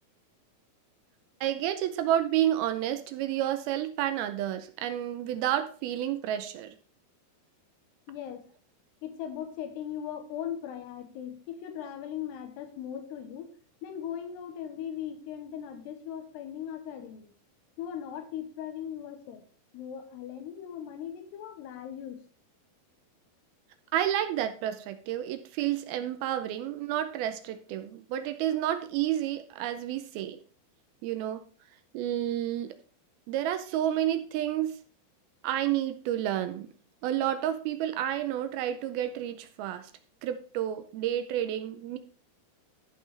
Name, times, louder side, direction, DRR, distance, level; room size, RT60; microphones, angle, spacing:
voice 1, 1.4-6.8 23.9-30.4 31.0-31.4 31.9-32.8 33.3-34.8 35.4-36.7 37.0-39.9 40.2-42.0, right 11 dB, 80° right, 9 dB, 2.3 m, -30 dB
voice 2, 8.1-8.5 9.0-13.5 13.8-17.3 17.8-19.4 19.7-22.2, left 9 dB, 80° left, 8 dB, 3.0 m, -39 dB
14.0 x 5.5 x 3.3 m, 0.40 s
omnidirectional pair, 4.8 m